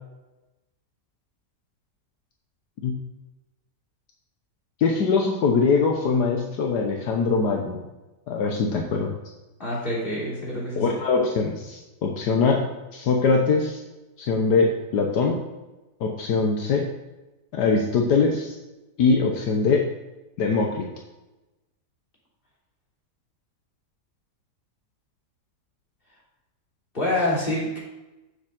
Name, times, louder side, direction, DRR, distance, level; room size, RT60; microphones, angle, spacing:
voice 1, 4.8-7.8 8.3-9.1 10.8-12.6 12.9-13.8 14.2-15.4 16.0-16.8 17.5-18.5 19.0-19.8 20.4-20.9, left 4 dB, 75° left, 1 dB, 1.6 m, -22 dB
voice 2, 9.6-10.8 26.9-27.8, left 1 dB, 30° left, -6 dB, 3.5 m, -26 dB
7.2 x 7.1 x 6.5 m, 1.1 s
omnidirectional pair, 1.8 m